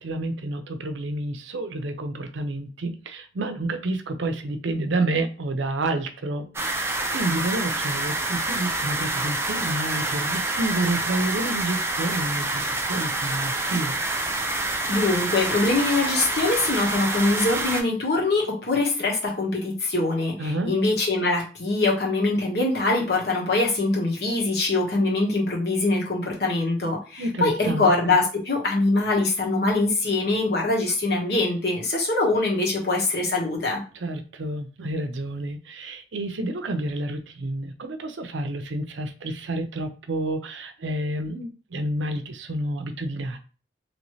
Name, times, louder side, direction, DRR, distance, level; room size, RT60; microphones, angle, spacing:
voice 1, 0.0-14.0 20.4-20.7 27.2-28.2 33.9-43.4, right 2 dB, 90° right, 0.5 m, -29 dB
sound 1, 6.5-17.8, right 2 dB, 15° right, 0.4 m, -27 dB
voice 2, 14.9-33.8, left 2 dB, 60° left, 1.1 m, -23 dB
3.0 x 2.6 x 3.1 m
head